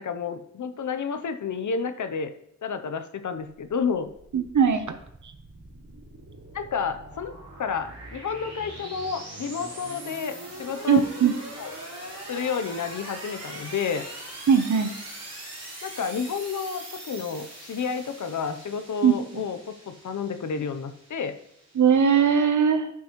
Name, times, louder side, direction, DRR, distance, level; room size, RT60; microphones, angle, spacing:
voice 1, 0.0-2.3 2.6-4.1 6.5-7.3 7.6-11.0 11.6-11.7 12.3-14.0 15.8-21.4, left 6 dB, 90° left, 9 dB, 0.7 m, -30 dB
sound 1, 3.7-22.2, right 1 dB, 60° right, 3.3 m, -42 dB
voice 2, 4.3-5.0 10.9-11.3 14.5-14.9 19.0-19.4 21.7-22.9, right 7 dB, 80° right, 8 dB, 0.8 m, -20 dB
11.5 x 6.0 x 3.0 m, 0.74 s
wide cardioid pair, 95°, 29 cm